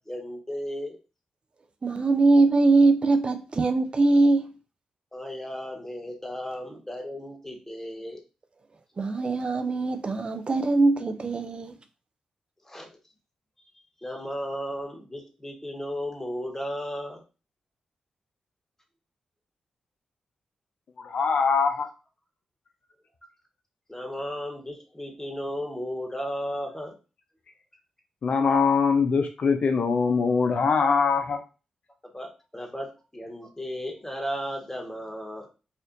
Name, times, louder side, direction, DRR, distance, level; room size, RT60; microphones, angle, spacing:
voice 1, 0.1-1.0 5.1-8.2 12.7-12.9 14.0-17.2 23.9-26.9 32.0-35.5, equal, 15° left, 1.4 m, -35 dB
voice 2, 1.8-4.5 9.0-11.7, right 3 dB, 45° right, 0.5 m, -22 dB
voice 3, 21.0-21.9 28.2-31.4, left 5 dB, 65° left, 0.6 m, -22 dB
4.3 x 2.5 x 2.6 m
supercardioid pair, 45°, 2 cm